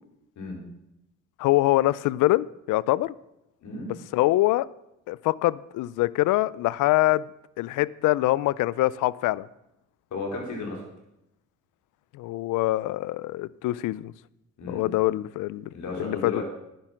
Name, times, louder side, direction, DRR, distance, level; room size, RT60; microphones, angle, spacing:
voice 1, 1.4-3.1 4.1-4.7 5.1-7.3 7.6-9.5 12.1-14.1 14.7-15.7 16.0-16.4, left 17 dB, 90° left, 0.5 m, -24 dB
voice 2, 10.1-10.8 14.6-14.9 15.7-16.4, left 3 dB, 70° left, 4.4 m, -33 dB
11.0 x 10.5 x 5.9 m
cardioid pair, 90°, 30 cm